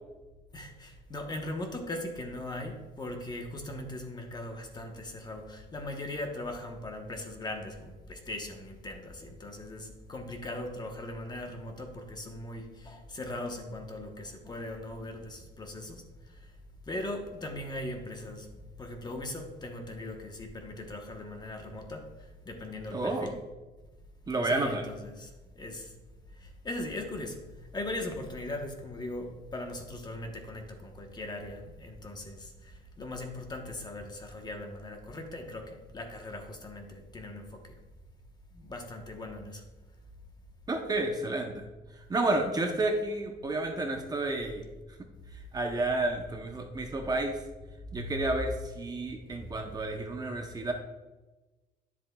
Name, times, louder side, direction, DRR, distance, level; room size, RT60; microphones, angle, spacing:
voice 1, 0.5-16.5 16.8-18.5 18.8-23.4 24.4-25.9 26.4-37.8 38.5-39.6 48.0-48.4 48.9-49.5, left 1 dB, 25° left, 1.1 m, -39 dB
voice 2, 22.9-23.3 24.3-24.8 40.7-41.6 42.1-44.6 45.5-47.4 47.9-50.7, right 2 dB, 25° right, 0.8 m, -30 dB
10.0 x 7.3 x 2.3 m
cardioid pair, 110°, 17 cm